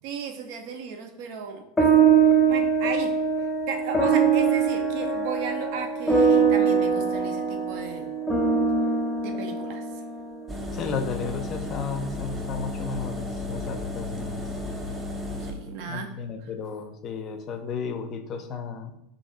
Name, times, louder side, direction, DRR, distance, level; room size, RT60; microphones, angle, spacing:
voice 1, 0.0-1.9 2.5-8.1 9.2-10.0 15.4-16.1 16.4-16.5, right 6 dB, 65° right, 5 dB, 0.5 m, -35 dB
sound 1, 1.8-10.4, right 6 dB, 15° left, 0.8 m, -22 dB
Engine, 10.5-15.5, left 2 dB, 20° right, 0.6 m, -33 dB
voice 2, 10.7-14.4 15.9-18.9, left 5 dB, 40° left, 6 dB, 0.5 m, -33 dB
2.6 x 2.4 x 4.1 m, 0.81 s
hypercardioid pair, 100°, 0 cm